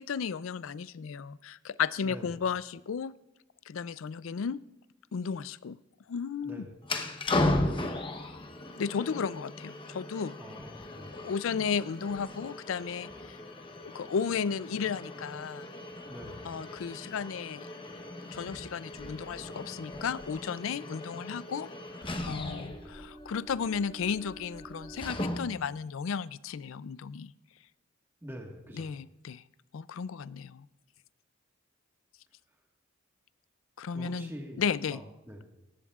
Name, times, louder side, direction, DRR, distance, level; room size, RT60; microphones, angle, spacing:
voice 1, 0.0-3.1 3.7-4.6 5.1-5.8 6.1-6.7 8.8-10.4 11.2-13.4 13.8-15.7 16.4-17.7 18.3-21.7 22.3-27.3 28.7-29.4 29.7-30.6 33.8-34.3 34.6-35.0, left 6 dB, 75° left, 18 dB, 0.4 m, -34 dB
voice 2, 2.0-2.4 6.4-6.7 10.4-11.3 16.0-16.5 28.2-29.0 33.9-34.6 34.9-35.5, equal, 10° right, 1 dB, 1.5 m, -45 dB
sound 1, 6.8-25.7, left 2 dB, 25° left, 0.9 m, -37 dB
18.0 x 15.0 x 2.4 m, 0.94 s
head